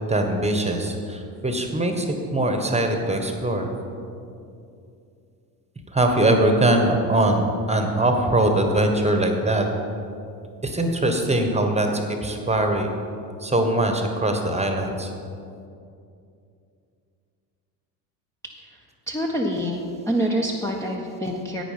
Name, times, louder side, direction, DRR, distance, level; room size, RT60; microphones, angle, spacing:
voice 1, 0.1-2.1 2.3-3.7 5.9-9.6 10.6-12.9 13.4-15.1, right 1 dB, 15° right, 4 dB, 1.4 m, -22 dB
voice 2, 19.1-21.6, equal, 5° left, -4 dB, 1.1 m, -26 dB
10.0 x 8.7 x 5.2 m, 2.6 s
hypercardioid pair, 65°, 49 cm